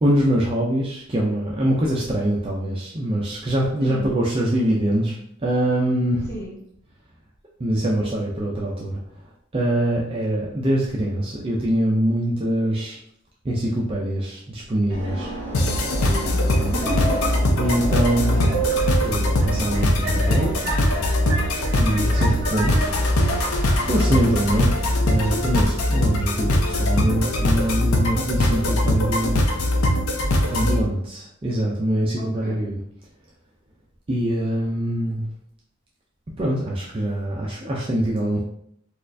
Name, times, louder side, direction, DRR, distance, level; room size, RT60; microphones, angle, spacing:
voice 1, 0.0-6.3 7.6-9.0 9.5-13.0 13.4-15.3 16.6-16.9 17.6-18.5 19.0-20.7 21.8-22.8 23.9-24.7 25.0-29.4 30.5-32.8 34.1-35.2 36.4-38.4, right 1 dB, 25° right, -3 dB, 0.4 m, -23 dB
voice 2, 3.8-4.2 6.3-6.6 15.1-17.6 30.5-31.0 32.2-32.7, right 1 dB, 15° left, -7 dB, 1.2 m, -34 dB
Subway metro underground, 14.9-25.6, right 2 dB, 55° right, 1.4 m, -31 dB
sound 1, 15.5-30.8, left 1 dB, 85° left, 0.6 m, -21 dB
4.1 x 2.4 x 2.6 m, 0.70 s
head